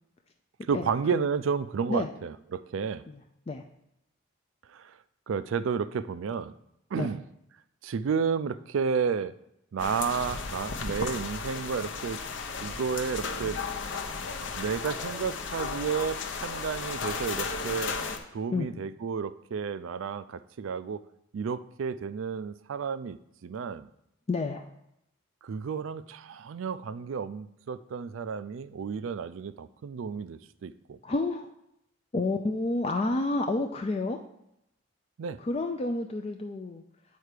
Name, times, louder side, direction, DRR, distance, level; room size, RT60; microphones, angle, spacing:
voice 1, 0.7-3.0 4.7-5.0 5.3-6.5 6.9-7.2 7.8-9.3 9.7-12.2 12.6-13.6 14.6-18.0 18.3-21.0 21.3-23.9 25.4-31.0 35.2-35.4, right 6 dB, 70° right, 14 dB, 0.4 m, -32 dB
voice 2, 3.1-3.6 6.9-7.1 18.5-18.7 24.3-24.7 31.0-31.5 32.1-34.2 35.4-36.8, left 2 dB, 30° left, 4 dB, 0.3 m, -30 dB
sound 1, 9.8-18.2, left 4 dB, 60° left, 0.7 m, -34 dB
8.2 x 4.4 x 4.9 m, 0.80 s
head